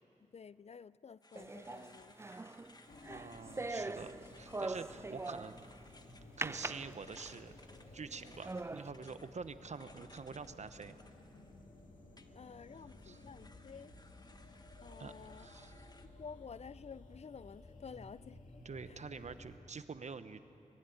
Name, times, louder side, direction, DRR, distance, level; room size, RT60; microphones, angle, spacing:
voice 1, 0.2-2.2 5.0-5.1 12.3-13.9 14.8-15.5 16.0-18.4 18.9-19.0, left 6 dB, 55° left, 19 dB, 0.4 m, -51 dB
sound 1, 1.2-11.7 12.2-16.1, left 2 dB, 30° left, 1.3 m, -62 dB
sound 2, 1.4-5.7 6.4-7.5 8.0-8.1 8.5-8.9, right 3 dB, 20° right, 0.4 m, -42 dB
sound 3, 2.9-19.6, left 2 dB, 85° left, 2.2 m, -56 dB
voice 2, 3.1-5.6 6.4-7.6 7.9-10.9 13.0-13.2 15.0-15.9 18.6-20.4, right 5 dB, 60° right, 11 dB, 0.9 m, -47 dB
22.0 x 16.0 x 9.4 m, 2.8 s
cardioid pair, 55°, 13 cm